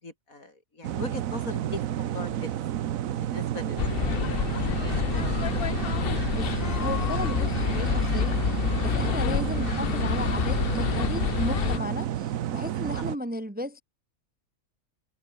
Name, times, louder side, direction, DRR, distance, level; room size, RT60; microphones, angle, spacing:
voice 1, 0.0-2.5 3.2-4.2 4.8-5.4 8.6-8.8 13.0-13.1, left 2 dB, 85° left, 5.4 m, -40 dB
sound 1, 0.8-13.2, right 11 dB, 80° right, 1.2 m, -31 dB
sound 2, 3.8-11.8, left 9 dB, 50° left, 0.8 m, -28 dB
sound 3, 4.7-10.0, right 2 dB, 40° right, 4.7 m, -47 dB
voice 2, 6.3-13.8, left 1 dB, 10° right, 0.9 m, -35 dB
omnidirectional pair, 1.4 m